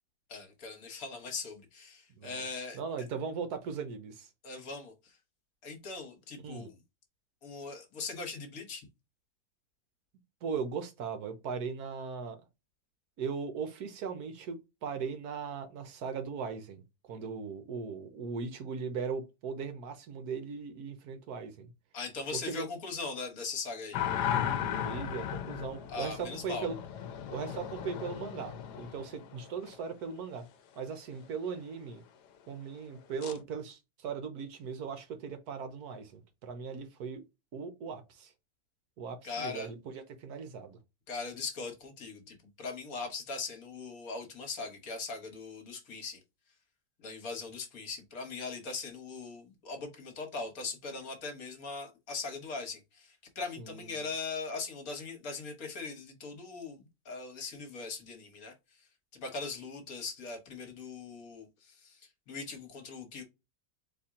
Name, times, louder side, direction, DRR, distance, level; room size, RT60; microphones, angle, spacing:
voice 1, 0.3-2.8 4.4-5.2 5.6-6.8 7.4-8.9 21.9-24.0 25.9-26.7 39.2-39.7 41.1-46.2 47.0-63.2, left 4 dB, 60° left, 1.5 m, -40 dB
voice 2, 2.2-2.5 2.7-4.3 6.4-6.7 10.4-12.4 13.2-21.7 22.5-22.7 24.7-26.8 27.3-30.5 30.8-32.0 32.5-37.2 37.5-38.3 39.0-40.8 53.6-53.9, right 5 dB, 70° right, 1.2 m, -38 dB
sound 1, 23.9-29.8 33.2-33.4, left 9 dB, 75° left, 1.2 m, -36 dB
4.2 x 3.1 x 3.6 m
omnidirectional pair, 1.8 m